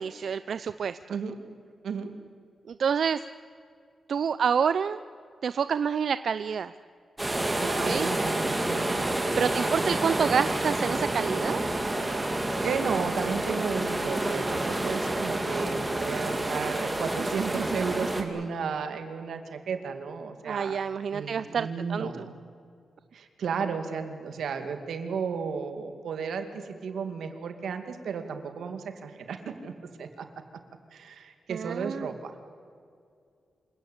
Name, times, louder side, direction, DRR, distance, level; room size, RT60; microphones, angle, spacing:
voice 1, 0.0-1.0 2.7-3.2 4.1-5.0 5.4-6.7 7.8-8.1 9.4-11.6 20.4-22.3 31.5-32.1, right 7 dB, 60° right, 14 dB, 0.5 m, -28 dB
sound 1, 7.2-18.2, right 1 dB, 15° right, 2.7 m, -29 dB
voice 2, 7.6-9.2 9.4-9.5 12.6-20.8 21.1-22.3 23.1-29.7 30.0-30.3 30.9-32.5, right 6 dB, 85° right, 7 dB, 2.4 m, -33 dB
27.0 x 17.0 x 8.7 m, 2.3 s
wide cardioid pair, 145°, 0 cm